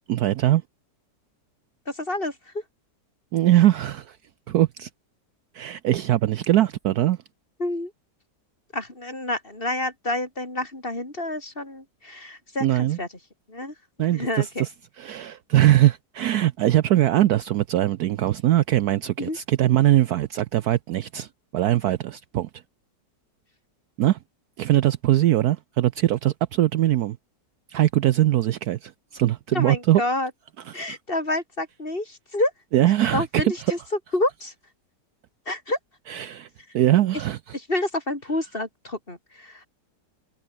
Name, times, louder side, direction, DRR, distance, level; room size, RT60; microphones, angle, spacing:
voice 1, 0.1-0.6 3.3-4.2 4.5-4.9 5.5-7.2 12.6-13.0 14.0-14.7 15.0-22.5 24.0-24.2 24.6-27.2 27.7-30.0 30.7-30.8 32.7-33.5 36.1-36.5 36.7-37.4, right 13 dB, 70° right, 1.0 m, -21 dB
voice 2, 1.9-2.6 7.6-7.9 8.7-13.1 13.5-13.7 14.1-14.6 19.2-19.4 29.5-30.3 30.7-32.5 33.1-33.8 34.1-34.5 35.5-35.8 37.5-39.7, left 1 dB, 30° left, 4.9 m, -28 dB
omnidirectional pair, 1.9 m